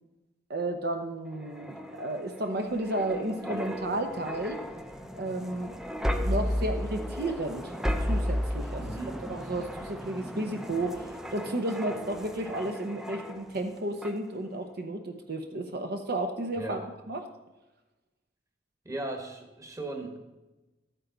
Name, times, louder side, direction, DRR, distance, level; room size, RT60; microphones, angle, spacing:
voice 1, 0.5-4.6 5.1-5.7 6.1-7.7 8.0-17.2, right 1 dB, 60° right, 4 dB, 0.8 m, -33 dB
sound 1, 1.3-13.7 14.0-14.3, equal, 5° right, 0.5 m, -34 dB
voice 2, 8.8-9.2 16.6-16.8 18.8-20.2, right 2 dB, 20° right, 3 dB, 1.3 m, -37 dB
12.5 x 9.1 x 3.9 m, 1.1 s
head